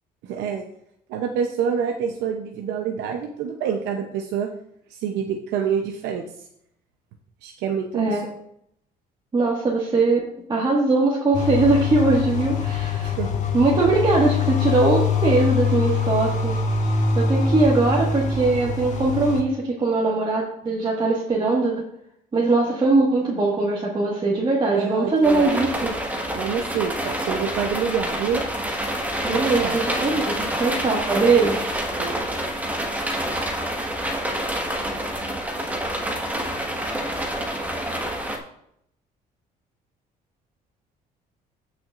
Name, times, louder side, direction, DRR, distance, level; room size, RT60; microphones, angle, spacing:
voice 1, 0.2-0.6 1.1-4.5 4.9-6.2 7.4-8.2 13.0-13.3 24.7-25.9 26.3-28.5 29.3-29.8 32.0-32.4, right 7 dB, 90° right, 3 dB, 0.8 m, -27 dB
voice 2, 7.9-8.3 9.3-10.2 10.5-13.1 13.5-16.6 16.9-21.7 22.3-25.9 29.2-31.7, right 3 dB, 30° right, -4 dB, 1.7 m, -21 dB
sound 1, 11.3-19.4, left 5 dB, 45° left, 1.6 m, -24 dB
sound 2, 25.2-38.4, right 1 dB, 10° right, 1.5 m, -27 dB
15.0 x 6.1 x 2.5 m, 0.73 s
cardioid pair, 110°, 17 cm